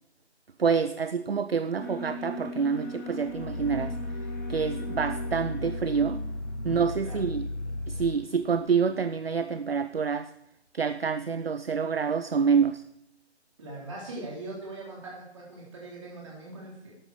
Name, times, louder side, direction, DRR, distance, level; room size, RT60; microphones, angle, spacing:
voice 1, 0.6-4.0 4.5-6.2 6.6-7.5 7.9-10.3 10.7-12.8, right 6 dB, 60° right, 12 dB, 0.5 m, -27 dB
Alarm, 1.8-8.9, equal, 15° left, 1.1 m, -41 dB
Growling, 3.3-8.2, left 2 dB, 80° left, 1.0 m, -35 dB
voice 2, 6.6-7.2 13.6-16.9, right 2 dB, 25° right, -4 dB, 3.6 m, -41 dB
12.0 x 8.9 x 4.8 m, 0.81 s
figure-of-eight pair, 155°, 34 cm